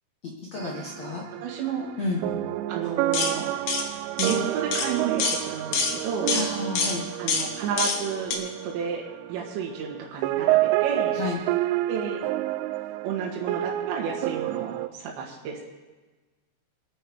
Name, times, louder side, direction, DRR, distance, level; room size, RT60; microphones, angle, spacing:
voice 1, 0.2-1.2 2.0-2.3 6.3-7.0 11.1-11.4, left 3 dB, 90° left, -1 dB, 1.5 m, -31 dB
sound 1, 0.6-10.0 10.2-14.9, right 15 dB, 90° right, 3.0 m, -29 dB
voice 2, 1.4-1.9 2.7-3.5 4.2-6.3 7.2-11.2 11.9-12.2 13.0-15.6, right 6 dB, 75° right, -2 dB, 3.7 m, -31 dB
sound 2, 3.1-3.3 3.7-3.8 4.2-4.4 4.7-4.9 5.2-5.4 5.7-6.0 6.3-6.5 6.8-7.0 7.3-7.5 7.8-8.0 8.3-8.4, left 5 dB, 65° left, 2.3 m, -25 dB
25.0 x 9.4 x 3.5 m, 1.3 s
omnidirectional pair, 5.4 m